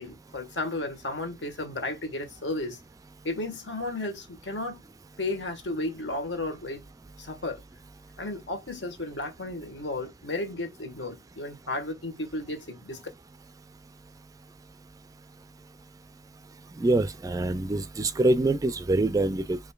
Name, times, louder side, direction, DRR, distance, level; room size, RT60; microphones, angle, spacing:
voice 1, 0.0-2.8 3.2-4.8 5.2-6.9 7.2-7.6 8.2-13.0, left 2 dB, 85° left, 1.3 m, -33 dB
voice 2, 16.8-19.6, right 2 dB, 20° right, 0.3 m, -25 dB
5.0 x 2.6 x 2.3 m
head